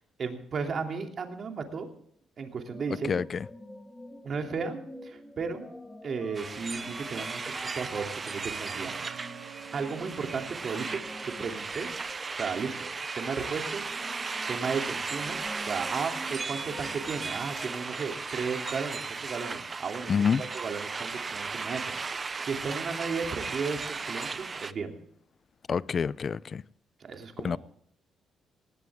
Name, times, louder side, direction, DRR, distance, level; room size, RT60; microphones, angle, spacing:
voice 1, 0.2-1.9 2.4-3.2 4.2-5.6 6.0-8.9 9.7-11.9 12.4-12.9 13.1-13.9 14.5-24.9 27.0-27.6, right 5 dB, 50° right, 2.9 m, -35 dB
sound 1, 2.7-18.3, left 1 dB, 10° left, 3.5 m, -47 dB
sound 2, 6.3-24.7, right 4 dB, 35° right, 0.7 m, -36 dB
sound 3, 7.4-12.8 13.0-13.1, right 10 dB, 75° right, 1.3 m, -50 dB
voice 2, 20.1-20.4 25.7-26.6 27.4-27.6, left 6 dB, 45° left, 0.5 m, -26 dB
19.0 x 16.5 x 3.6 m
cardioid pair, 90°, 0 cm